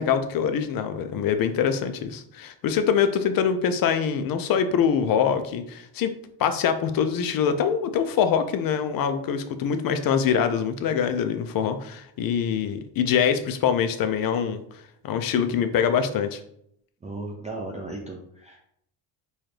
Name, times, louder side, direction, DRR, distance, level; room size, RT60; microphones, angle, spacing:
voice 1, 0.0-6.1 6.4-14.6 15.0-16.4, left 7 dB, 50° left, 9 dB, 0.4 m, -24 dB
voice 2, 17.0-18.6, right 2 dB, 15° right, -1 dB, 0.3 m, -36 dB
4.1 x 2.4 x 3.2 m, 0.71 s
cardioid pair, 120°, 48 cm